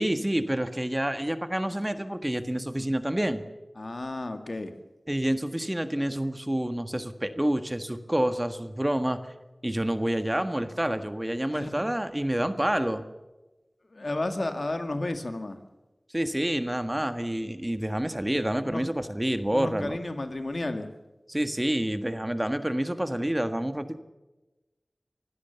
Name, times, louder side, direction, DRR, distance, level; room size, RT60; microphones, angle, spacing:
voice 1, 0.0-3.4 5.1-9.2 9.6-13.0 16.1-20.0 21.3-24.0, right 1 dB, 20° right, 9 dB, 1.6 m, -28 dB
voice 2, 3.8-4.7 11.5-11.8 13.9-15.6 18.6-18.8 19.5-20.9, left 2 dB, 65° left, 7 dB, 2.1 m, -32 dB
24.5 x 16.5 x 7.1 m, 1.1 s
wide cardioid pair, 40°, 0 cm